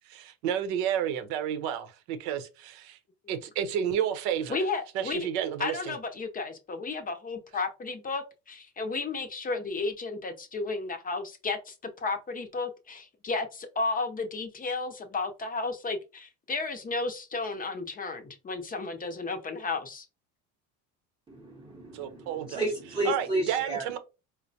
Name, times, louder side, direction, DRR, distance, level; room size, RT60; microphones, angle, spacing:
voice 1, 0.1-3.0 3.3-4.6 4.9-5.9 21.9-22.6 23.1-24.0, right 9 dB, 80° right, 0.8 m, -31 dB
voice 2, 4.5-5.3 5.6-20.1, left 3 dB, 25° left, 0.6 m, -33 dB
voice 3, 21.3-23.9, right 1 dB, 15° right, 0.8 m, -32 dB
4.5 x 2.1 x 2.7 m
supercardioid pair, 110°, 36 cm